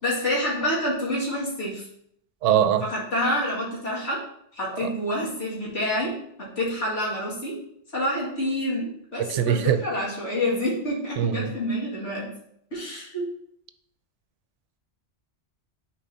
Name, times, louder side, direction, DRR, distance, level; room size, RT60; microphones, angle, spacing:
voice 1, 0.0-1.9 2.8-4.2 4.5-7.6 7.9-12.3 12.7-13.4, left 1 dB, 85° left, -6 dB, 2.5 m, -28 dB
voice 2, 2.4-2.8 4.8-4.9 9.2-9.8 11.2-11.5, right 9 dB, 85° right, 9 dB, 0.9 m, -22 dB
10.5 x 4.6 x 2.8 m, 0.73 s
omnidirectional pair, 1.2 m